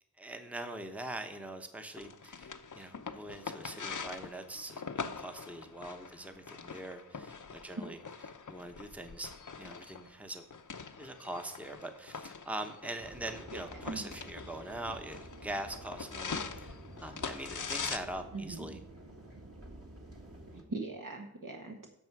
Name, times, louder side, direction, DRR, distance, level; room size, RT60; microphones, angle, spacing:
voice 1, 0.2-8.0 8.5-10.4 11.0-18.8, right 1 dB, 5° right, 6 dB, 0.9 m, -43 dB
sound 1, 2.0-18.0, left 5 dB, 50° left, 0.8 m, -43 dB
sound 2, 13.0-20.6, right 1 dB, 35° right, 1.8 m, -50 dB
voice 2, 18.3-18.8 20.5-21.9, right 3 dB, 55° right, 1 dB, 1.2 m, -41 dB
11.0 x 6.8 x 4.7 m, 0.78 s
wide cardioid pair, 55°, 39 cm